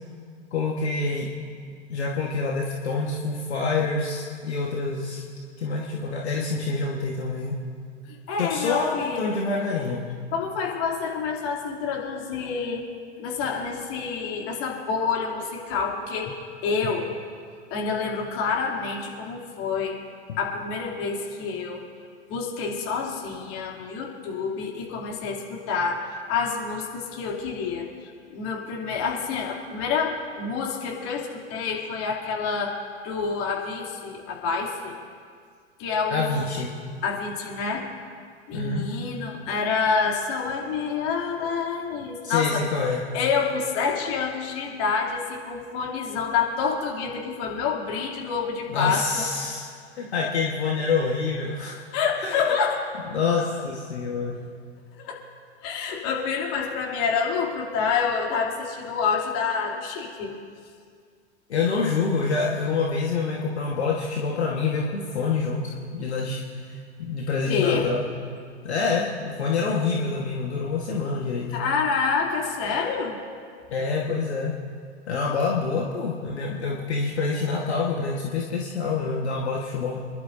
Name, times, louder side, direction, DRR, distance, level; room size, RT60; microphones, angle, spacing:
voice 1, 0.5-1.3 1.9-5.2 5.6-7.6 8.4-10.0 20.3-20.4 36.1-36.7 38.5-38.9 42.2-43.1 48.7-49.7 50.0-51.8 52.2-52.5 53.1-54.4 61.5-68.0 68.6-71.5 73.7-74.6 75.1-80.0, left 4 dB, 70° left, -2 dB, 1.6 m, -26 dB
voice 2, 8.1-9.4 10.3-12.9 13.2-17.1 17.7-19.9 20.4-21.8 22.3-32.8 33.0-34.9 35.8-36.5 37.0-37.9 38.5-42.6 43.1-49.3 51.9-52.8 55.0-55.2 55.6-60.4 67.5-67.9 71.5-73.2, left 5 dB, 40° left, -2 dB, 3.0 m, -28 dB
27.5 x 11.5 x 2.7 m, 2.1 s
figure-of-eight pair, 90°, 34 cm